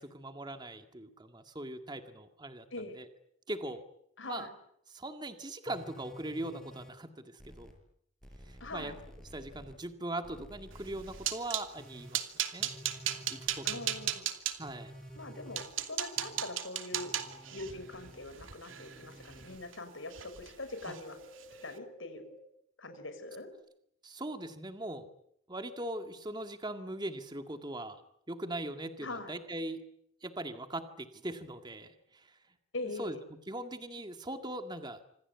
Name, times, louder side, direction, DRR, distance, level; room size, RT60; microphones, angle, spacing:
voice 1, 0.0-2.7 2.9-3.1 3.5-3.8 4.2-4.5 4.9-7.7 8.4-8.9 9.3-12.7 13.3-13.8 14.6-14.9 20.8-21.0 24.0-25.1 25.5-28.0 28.3-29.8 30.2-32.4 33.0-33.2 33.5-35.0, right 1 dB, 20° right, 7 dB, 1.9 m, -40 dB
voice 2, 4.2-4.5 8.6-9.0 13.6-14.3 15.2-17.1 17.5-21.2 21.6-22.2 22.8-23.5 29.0-29.3 32.7-33.2, left 2 dB, 75° left, 9 dB, 5.6 m, -42 dB
sound 1, 5.7-6.9 7.4-7.7 8.2-9.7 10.2-11.3 11.8-12.1 12.6-14.1 14.6-15.7 16.2-16.4 16.9-18.2 18.7-19.6 20.1-20.4 20.9-22.4 22.9-23.5, equal, 5° left, 6.6 m, -51 dB
sound 2, 10.8-11.7 12.1-14.6 15.2-15.3 15.6-19.8 20.1-20.5 20.8-21.0 21.4-21.6, right 11 dB, 80° right, 2.7 m, -36 dB
27.0 x 26.0 x 8.3 m, 0.74 s
head